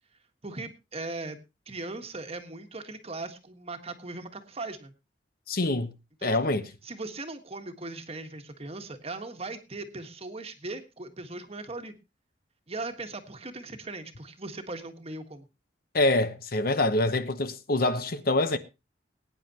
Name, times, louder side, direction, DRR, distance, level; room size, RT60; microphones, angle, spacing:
voice 1, 0.4-1.4 1.7-4.9 6.2-6.6 6.8-11.9 12.7-15.4, right 2 dB, 35° right, 1.5 m, -39 dB
voice 2, 5.5-5.9 6.2-6.6 15.9-18.6, left 2 dB, 55° left, 1.0 m, -25 dB
21.0 x 9.7 x 2.9 m
head